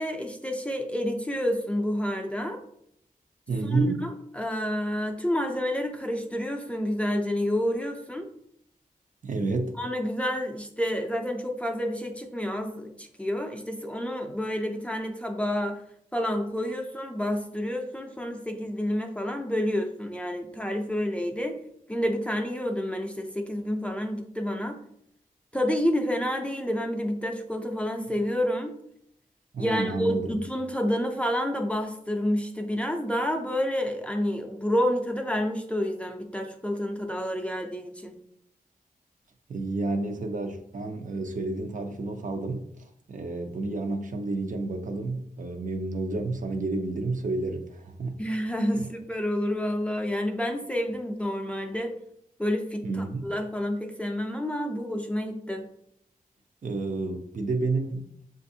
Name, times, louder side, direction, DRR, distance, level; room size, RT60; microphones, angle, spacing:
voice 1, 0.0-2.6 3.6-8.3 9.8-15.8 16.1-21.6 21.9-24.8 25.5-28.8 29.6-38.1 48.2-52.0 52.4-55.7, equal, 10° left, 3 dB, 0.4 m, -29 dB
voice 2, 3.5-4.0 9.2-9.7 29.5-30.3 39.5-48.2 48.7-48.9 52.8-53.3 56.6-58.2, right 3 dB, 60° right, 5 dB, 0.5 m, -30 dB
6.8 x 2.5 x 2.7 m, 0.72 s
wide cardioid pair, 125°, 15 cm